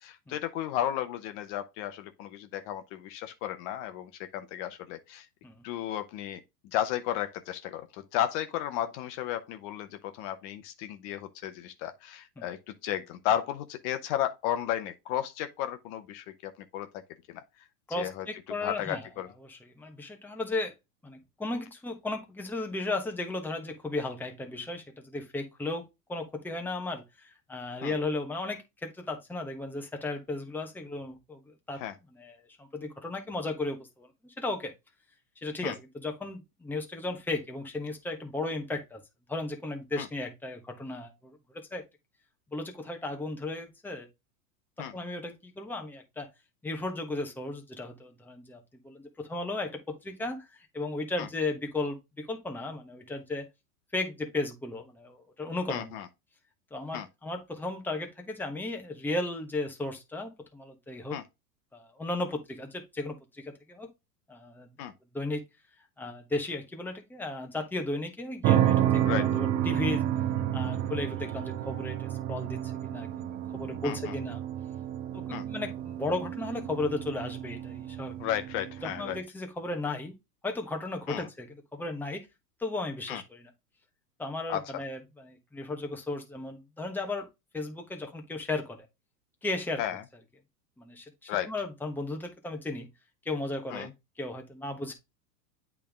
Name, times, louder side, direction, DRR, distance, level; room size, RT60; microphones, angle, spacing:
voice 1, 0.0-5.3 5.6-17.0 18.0-19.3 27.8-27.9 31.7-32.0 35.6-35.8 40.0-40.1 44.8-44.9 51.2-51.3 55.7-56.1 56.9-57.1 61.1-61.2 64.8-64.9 69.0-69.3 73.8-74.2 75.3-75.4 78.2-79.2 81.1-81.3 83.1-83.2 84.5-84.8 89.8-90.0 91.3-91.5 93.7-93.9, left 11 dB, 50° left, 0.9 m, -34 dB
voice 2, 17.9-19.1 19.4-20.7 21.0-31.8 32.1-34.7 35.4-39.0 39.3-41.8 42.5-44.1 44.8-46.3 46.6-50.5 50.7-53.4 53.9-56.0 56.7-61.2 61.7-63.9 64.3-64.7 65.1-65.4 66.0-70.1 70.5-74.4 75.1-78.2 79.0-80.1 80.4-82.3 82.6-83.4 84.2-87.3 87.5-88.9 89.4-89.8 90.8-92.9 93.2-93.9 94.2-94.9, left 2 dB, 5° left, 1.1 m, -35 dB
sound 1, 68.4-79.2, right 11 dB, 25° right, 0.4 m, -30 dB
8.4 x 3.6 x 3.5 m
hypercardioid pair, 115°, 47 cm